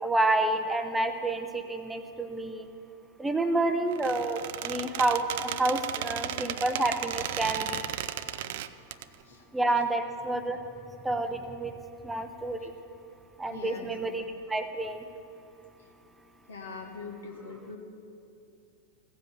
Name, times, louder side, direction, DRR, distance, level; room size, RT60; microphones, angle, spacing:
voice 1, 0.0-2.7 3.2-7.8 9.5-10.6 11.0-11.8 12.0-12.7 13.4-15.1, right 2 dB, 10° right, 8 dB, 0.7 m, -29 dB
Squeak, 3.9-9.0, right 12 dB, 55° right, 0.4 m, -35 dB
voice 2, 13.5-13.9 16.5-17.8, left 4 dB, 70° left, 2 dB, 1.3 m, -42 dB
16.0 x 7.7 x 7.1 m, 2.7 s
figure-of-eight pair, 90°, 0 cm